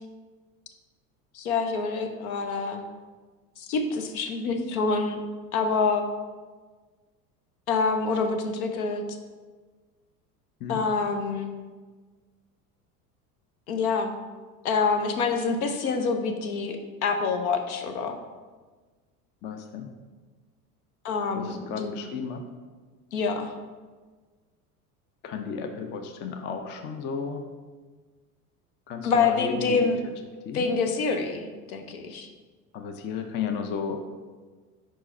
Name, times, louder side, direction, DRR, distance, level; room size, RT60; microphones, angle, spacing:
voice 1, 1.3-2.8 3.6-5.2 5.5-6.0 7.7-9.0 10.7-11.5 13.7-14.1 14.6-18.2 21.0-21.9 23.1-23.5 29.0-30.0 30.5-32.3, left 4 dB, 65° left, 5 dB, 0.8 m, -26 dB
voice 2, 19.4-19.9 21.4-22.4 25.2-27.4 28.9-29.9 30.4-30.7 32.7-34.0, left 6 dB, 25° left, 5 dB, 0.4 m, -33 dB
5.0 x 4.6 x 4.2 m, 1.4 s
figure-of-eight pair, 70°, 47 cm